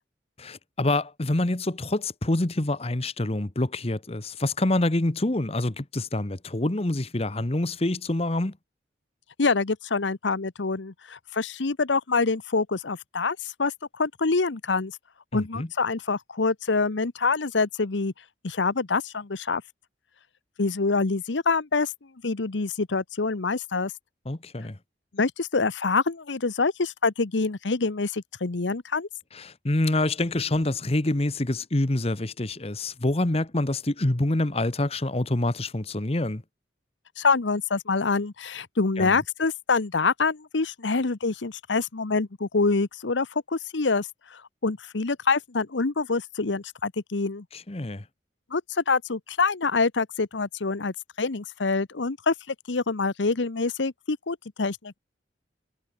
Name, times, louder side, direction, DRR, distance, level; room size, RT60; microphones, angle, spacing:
voice 1, 0.4-8.6 15.3-15.7 24.3-24.8 29.3-36.4 39.0-39.2 47.5-48.0, left 1 dB, 35° left, 1.1 m, -26 dB
voice 2, 9.4-14.9 15.3-18.1 18.4-19.6 20.6-21.9 22.2-23.9 25.1-29.1 37.2-47.4 48.5-55.0, left 4 dB, 85° left, 1.0 m, -26 dB
head